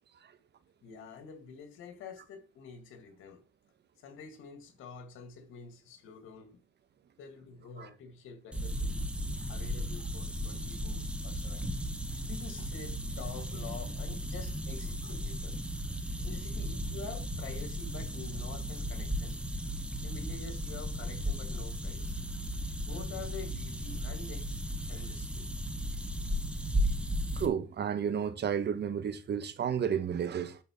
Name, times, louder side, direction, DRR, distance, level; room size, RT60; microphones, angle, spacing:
voice 1, 0.8-3.4 4.0-6.6 7.2-9.1 9.5-11.7 12.3-15.6 16.2-19.4 20.0-22.3 22.8-24.5 24.9-25.5, left 5 dB, 85° left, 2.5 m, -47 dB
sound 1, 8.5-27.5, equal, 5° right, 1.9 m, -35 dB
voice 2, 27.4-30.6, right 8 dB, 60° right, 1.7 m, -32 dB
10.0 x 4.1 x 7.5 m
cardioid pair, 90°, 20 cm